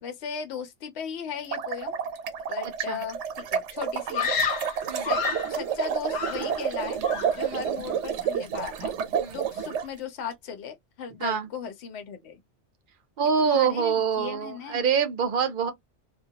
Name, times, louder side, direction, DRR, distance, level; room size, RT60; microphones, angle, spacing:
voice 1, 0.0-2.0 2.5-4.3 4.9-5.2 5.5-7.0 7.3-9.0 9.3-12.4 13.4-14.9, left 7 dB, 70° left, 0.9 m, -37 dB
sound 1, 1.3-9.8, right 7 dB, 80° right, 0.9 m, -30 dB
Screaming, 4.1-5.6 6.1-6.8 7.0-7.5, left 5 dB, 55° left, 0.5 m, -30 dB
voice 2, 13.2-15.7, right 6 dB, 55° right, 0.6 m, -25 dB
2.2 x 2.1 x 2.7 m
omnidirectional pair, 1.2 m